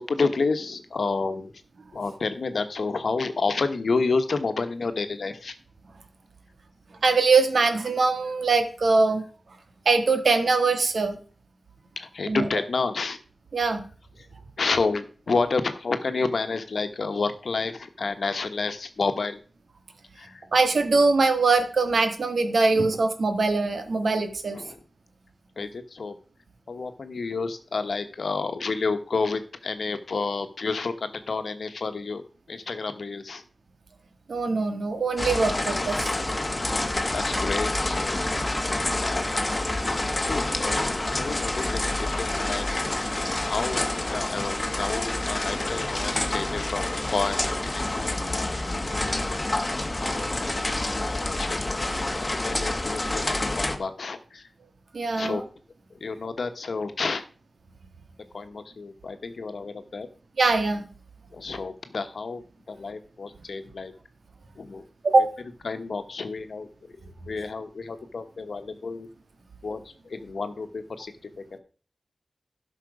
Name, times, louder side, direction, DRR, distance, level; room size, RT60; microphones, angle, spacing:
voice 1, 0.0-1.5 1.9-5.5 7.7-7.8 12.0-13.2 14.2-14.3 14.6-19.4 20.1-20.4 21.9-22.0 24.5-24.8 25.6-26.1 26.7-32.2 32.5-33.4 37.1-38.2 39.0-39.5 40.2-42.7 43.3-48.5 48.7-48.9 49.4-49.8 50.4-54.5 55.2-55.4 55.9-57.2 58.3-60.1 61.3-63.9 64.6-64.8 65.1-65.3 65.6-66.7 67.3-69.1 69.6-71.6, left 4 dB, 75° left, 8 dB, 1.1 m, -30 dB
voice 2, 7.0-9.2 9.8-11.1 12.2-12.5 13.5-13.8 20.5-24.6 34.3-36.2 54.9-55.4 60.4-60.9 65.0-65.3, right 3 dB, 75° right, 7 dB, 1.5 m, -22 dB
sound 1, 35.2-53.8, left 2 dB, 25° left, 1.1 m, -28 dB
12.0 x 5.9 x 4.9 m, 0.40 s
wide cardioid pair, 75°, 0 cm